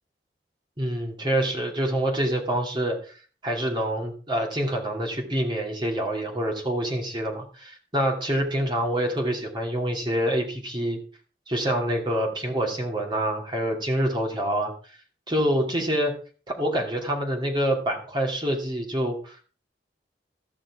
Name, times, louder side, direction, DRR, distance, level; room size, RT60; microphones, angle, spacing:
voice 1, 0.8-3.1 3.4-11.0 11.5-14.7 15.3-16.1 16.5-19.4, right 1 dB, 25° right, 1 dB, 2.8 m, -26 dB
15.0 x 6.4 x 4.8 m, 0.39 s
head